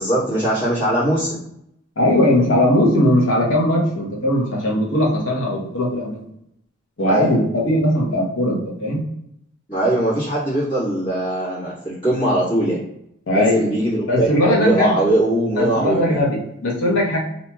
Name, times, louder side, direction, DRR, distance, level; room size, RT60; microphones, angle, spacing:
voice 1, 0.0-1.4 7.1-7.3 9.7-12.8 13.3-16.1, right 1 dB, 25° left, -14 dB, 1.4 m, -21 dB
voice 2, 2.0-6.2 7.0-9.0 13.3-13.6 14.1-15.0 15.6-17.2, left 1 dB, 70° left, -3 dB, 0.9 m, -19 dB
2.9 x 2.7 x 2.3 m, 0.75 s
head